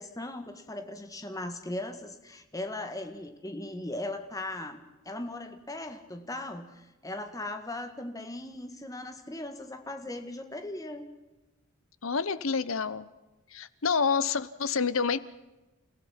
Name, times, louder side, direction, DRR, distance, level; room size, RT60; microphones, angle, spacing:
voice 1, 0.0-11.1, left 1 dB, 15° left, 7 dB, 1.8 m, -38 dB
voice 2, 12.0-13.1 13.5-15.2, left 5 dB, 80° left, 16 dB, 1.0 m, -28 dB
30.0 x 16.0 x 5.8 m, 1.1 s
head